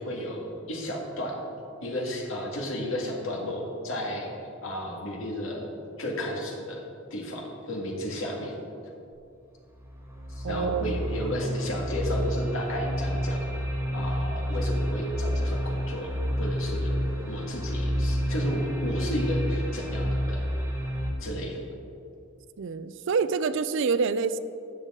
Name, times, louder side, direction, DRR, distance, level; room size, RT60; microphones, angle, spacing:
voice 1, 0.0-1.4 1.8-4.3 4.6-5.7 6.0-6.8 7.1-8.5 10.3-13.4 13.9-20.4 21.2-21.6, left 1 dB, 85° left, -1 dB, 1.9 m, -33 dB
sound 1, 9.8-21.1, equal, 15° right, 1.4 m, -29 dB
voice 2, 10.4-10.8 22.6-24.4, right 5 dB, 65° right, 13 dB, 0.4 m, -26 dB
11.5 x 8.0 x 3.7 m, 2.6 s
head